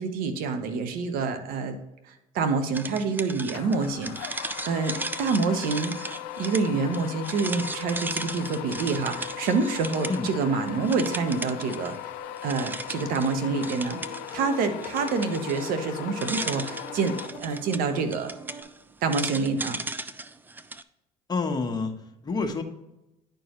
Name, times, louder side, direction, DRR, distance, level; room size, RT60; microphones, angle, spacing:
voice 1, 0.0-1.8 2.1-12.0 12.4-14.0 14.3-18.3 19.0-19.8, right 4 dB, 70° right, 8 dB, 1.0 m, -27 dB
sound 1, 2.7-10.4 10.7-12.0 12.4-20.8, right 2 dB, 10° right, 0.4 m, -37 dB
sound 2, 3.5-17.8, left 13 dB, 85° left, 0.5 m, -38 dB
sound 3, 12.8-18.6, right 4 dB, 35° right, 2.3 m, -46 dB
voice 2, 21.3-22.6, left 3 dB, 25° left, 4 dB, 1.2 m, -28 dB
10.5 x 4.6 x 3.0 m, 0.92 s
supercardioid pair, 95°, 15 cm